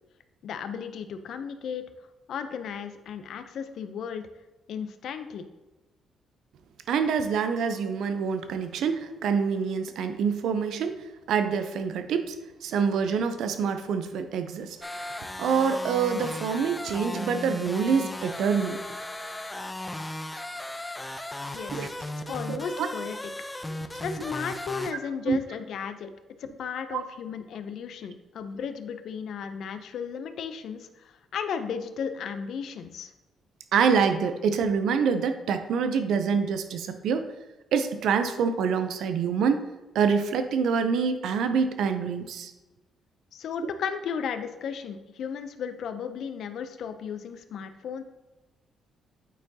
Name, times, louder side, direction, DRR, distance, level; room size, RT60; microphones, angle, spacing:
voice 1, 0.4-1.8 2.3-4.3 4.7-5.5 21.5-21.9 22.3-23.2 24.0-26.1 26.4-33.1 43.3-48.0, left 7 dB, 70° left, 9 dB, 0.5 m, -35 dB
voice 2, 6.9-11.0 11.3-12.4 12.6-14.8 15.0-18.8 21.7-21.9 22.5-22.9 25.3-25.4 26.9-27.0 33.7-37.3 37.7-39.6 39.9-42.5, right 6 dB, 75° right, 9 dB, 0.5 m, -26 dB
sound 1, 14.8-24.9, left 1 dB, 15° left, 0.6 m, -36 dB
9.1 x 4.4 x 2.8 m, 1.1 s
supercardioid pair, 60°, 0 cm